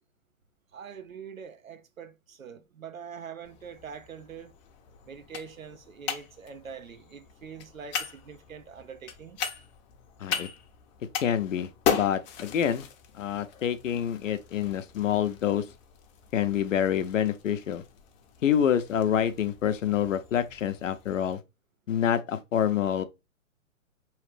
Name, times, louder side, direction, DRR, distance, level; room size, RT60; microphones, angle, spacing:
voice 1, 0.7-4.5 5.0-9.4, right 6 dB, 85° right, 0.9 m, -44 dB
sound 1, 3.4-21.3, left 7 dB, 35° left, 0.7 m, -38 dB
voice 2, 11.2-12.9 13.1-15.7 16.3-17.8 18.4-21.4 21.9-23.0, left 9 dB, 70° left, 0.8 m, -27 dB
4.9 x 3.2 x 3.2 m
figure-of-eight pair, 120°, 40 cm